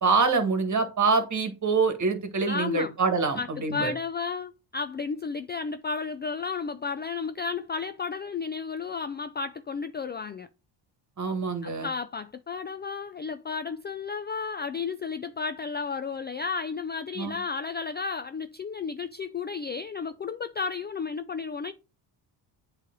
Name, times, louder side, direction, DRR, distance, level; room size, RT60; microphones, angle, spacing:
voice 1, 0.0-3.9 11.2-11.9 17.2-17.4, right 4 dB, 35° right, 1.7 m, -25 dB
voice 2, 2.5-2.9 3.4-10.5 11.6-21.7, left 5 dB, 25° left, 0.3 m, -33 dB
8.2 x 3.3 x 3.8 m
supercardioid pair, 70°, 49 cm